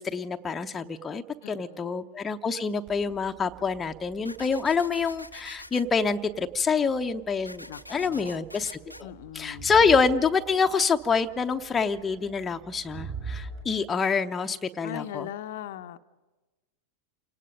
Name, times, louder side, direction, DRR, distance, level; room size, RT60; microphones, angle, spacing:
voice 1, 0.0-9.1 9.3-15.3, left 5 dB, 15° left, 6 dB, 0.8 m, -26 dB
voice 2, 1.4-1.9 7.7-8.4 9.0-9.7 14.8-16.0, left 11 dB, 55° left, 9 dB, 0.8 m, -40 dB
Crowd, 2.9-13.6, right 4 dB, 50° right, 6.2 m, -45 dB
sound 1, 4.3-5.8 7.5-9.0, left 1 dB, 90° left, 0.7 m, -44 dB
28.5 x 18.5 x 5.2 m, 1.2 s
figure-of-eight pair, 90°, 0 cm